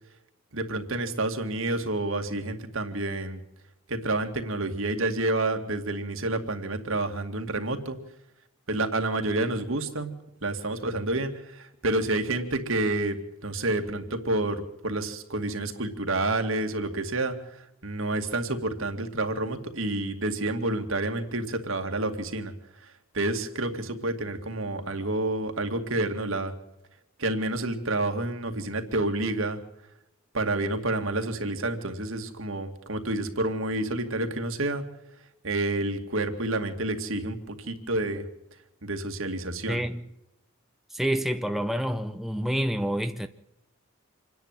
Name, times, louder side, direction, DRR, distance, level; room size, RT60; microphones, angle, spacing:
voice 1, 0.5-3.4 3.9-8.0 8.7-10.1 10.4-13.2 13.4-22.5 22.8-26.5 27.2-29.6 30.3-34.8 35.4-38.2 38.8-39.8, right 2 dB, 60° right, 2.3 m, -29 dB
voice 2, 39.7-40.1 40.9-43.3, equal, ahead, 0.6 m, -28 dB
27.0 x 10.5 x 9.1 m
head